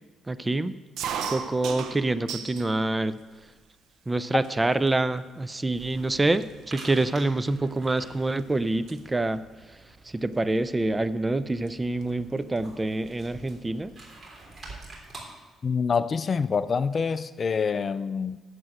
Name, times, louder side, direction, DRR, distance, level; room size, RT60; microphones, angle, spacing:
voice 1, 0.3-0.7 1.3-3.2 4.1-9.4 10.1-13.9, right 2 dB, 20° right, 0.5 m, -26 dB
sound 1, 1.0-2.7 3.1-3.8 4.4-4.5 4.8-5.2 5.8-5.9 6.1-8.4 8.7-9.0 10.3-10.6 11.7-11.8 12.0-12.1 12.4-13.3, right 7 dB, 80° right, 0.9 m, -36 dB
sound 2, 5.7-15.2, right 2 dB, 35° right, 3.4 m, -48 dB
voice 2, 15.6-18.4, left 5 dB, 40° left, 0.4 m, -26 dB
8.0 x 7.8 x 7.7 m
cardioid pair, 90°, 0 cm